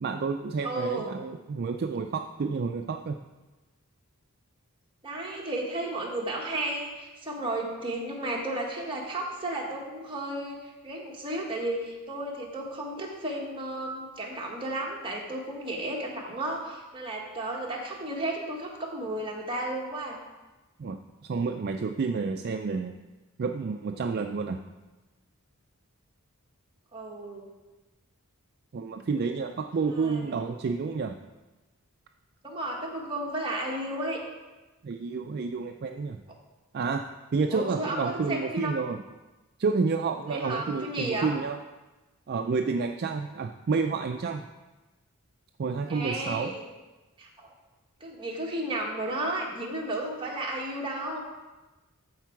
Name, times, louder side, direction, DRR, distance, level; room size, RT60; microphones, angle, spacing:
voice 1, 0.0-3.2 20.8-23.0 23.4-24.6 28.7-31.2 34.8-36.2 36.7-39.0 39.6-41.6 42.3-44.4 45.6-46.5, right 4 dB, 45° right, 5 dB, 0.4 m, -30 dB
voice 2, 0.6-1.1 5.0-20.2 26.9-27.5 29.8-30.3 32.4-34.2 37.5-38.7 40.3-41.3 45.9-46.6 47.2-47.5 48.0-51.2, right 1 dB, 25° right, -2 dB, 1.6 m, -33 dB
13.5 x 4.6 x 4.6 m, 1.1 s
head